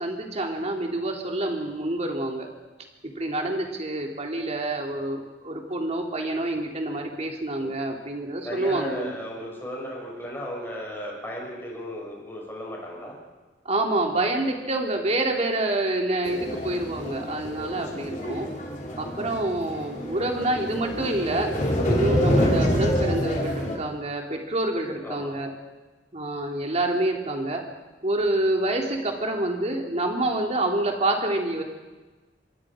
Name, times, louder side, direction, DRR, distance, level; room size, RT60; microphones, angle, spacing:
voice 1, 0.0-2.5 3.2-9.1 13.6-18.5 19.0-21.5 21.9-25.5 26.1-27.6 28.0-31.6, right 1 dB, 40° right, 1 dB, 3.1 m, -27 dB
voice 2, 7.6-7.9 8.4-13.2 21.8-22.0 25.0-25.3, equal, 15° left, -3 dB, 6.6 m, -35 dB
sound 1, 16.2-23.8, equal, 45° left, 3.7 m, -27 dB
25.5 x 22.5 x 5.1 m, 1.2 s
head